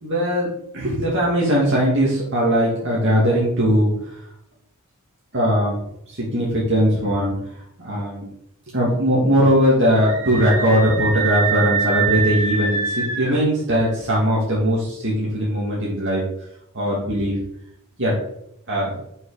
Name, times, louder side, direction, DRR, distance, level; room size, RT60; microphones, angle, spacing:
voice 1, 0.0-3.9 5.3-5.7 6.1-7.3 7.8-8.2 8.7-16.2 16.7-17.4 18.0-18.1 18.7-19.0, equal, 55° right, -6 dB, 2.4 m, -19 dB
Screaming, 10.0-13.4, right 5 dB, 75° right, 1.9 m, -24 dB
6.3 x 5.6 x 5.0 m, 0.74 s
head